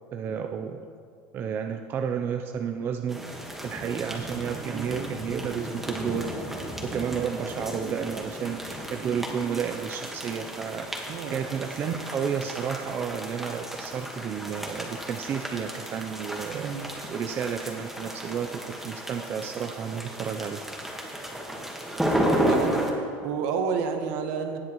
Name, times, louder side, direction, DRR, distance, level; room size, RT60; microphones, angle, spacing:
voice 1, 0.1-0.8 1.3-8.6 8.9-16.7 17.1-20.6, right 7 dB, 35° right, 5 dB, 0.5 m, -32 dB
sound 1, 3.1-22.9, equal, 5° right, 1.4 m, -33 dB
voice 2, 4.5-5.2 11.1-11.4 16.5-16.9 22.3-22.9 23.2-24.6, right 6 dB, 70° right, 6 dB, 1.1 m, -30 dB
18.5 x 7.5 x 3.0 m, 2.2 s
supercardioid pair, 130°, 6 cm